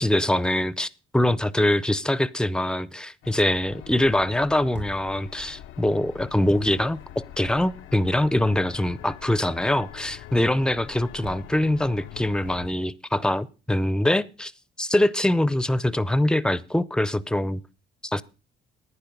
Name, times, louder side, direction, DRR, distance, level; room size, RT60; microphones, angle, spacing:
voice 1, 0.0-14.5 14.8-17.6 18.0-18.2, left 1 dB, 5° left, 0.6 m, -23 dB
sound 1, 3.2-12.7, left 12 dB, 90° left, 0.6 m, -43 dB
sound 2, 4.7-5.1 6.0-7.1 11.2-11.6 12.2-12.9, right 4 dB, 65° right, 1.4 m, -44 dB
10.5 x 9.7 x 5.2 m
cardioid pair, 90°, 20 cm